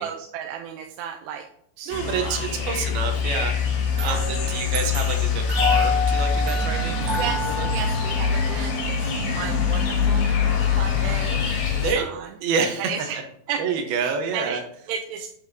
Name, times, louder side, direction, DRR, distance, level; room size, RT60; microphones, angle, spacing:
voice 1, 0.0-1.5 1.8-2.7 3.9-4.2 7.1-10.3 10.7-12.3 12.9-13.2 13.5-13.6 14.0-14.6 14.9-15.3, right 8 dB, 85° right, 2 dB, 2.8 m, -34 dB
sound 1, 1.9-11.9, left 5 dB, 75° left, 3.9 m, -24 dB
voice 2, 1.9-7.7 11.7-12.1 12.4-13.1 13.6-14.6, right 5 dB, 70° right, 4 dB, 2.8 m, -28 dB
sound 2, 3.9-8.9, left 5 dB, 45° right, 4.7 m, -29 dB
9.0 x 7.9 x 2.8 m, 0.69 s
omnidirectional pair, 4.8 m